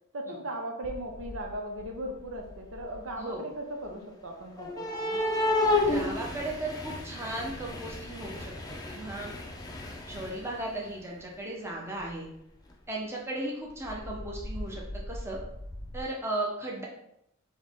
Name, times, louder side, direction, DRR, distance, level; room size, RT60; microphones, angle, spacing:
voice 1, 0.1-5.2, right 1 dB, 75° right, 2 dB, 0.8 m, -38 dB
sound 1, 0.8-1.5 1.8-3.1 4.6-10.7 12.1-12.2 12.7-12.8 13.8-16.0, left 2 dB, 20° left, 0.5 m, -33 dB
voice 2, 5.8-9.3 10.1-12.2 12.9-15.4 15.9-16.8, right 2 dB, 10° right, -2 dB, 0.8 m, -36 dB
4.6 x 3.0 x 3.6 m, 0.77 s
head